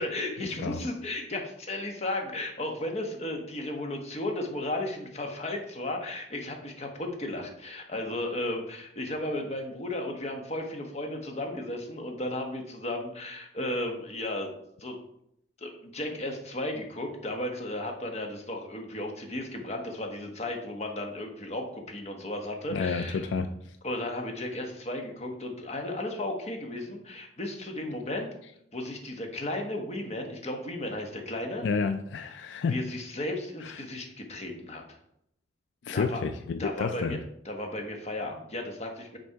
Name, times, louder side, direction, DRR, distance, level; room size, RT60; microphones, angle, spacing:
voice 1, 0.0-14.5 14.8-15.0 15.6-23.3 23.8-28.3 28.7-31.6 32.7-35.0 35.9-36.2 36.6-37.2 37.4-39.2, left 1 dB, 35° left, 3 dB, 1.2 m, -34 dB
voice 2, 22.7-23.5 31.6-32.8 33.6-33.8 35.8-37.2, left 5 dB, 75° left, 9 dB, 0.4 m, -30 dB
6.5 x 4.4 x 4.5 m, 0.75 s
head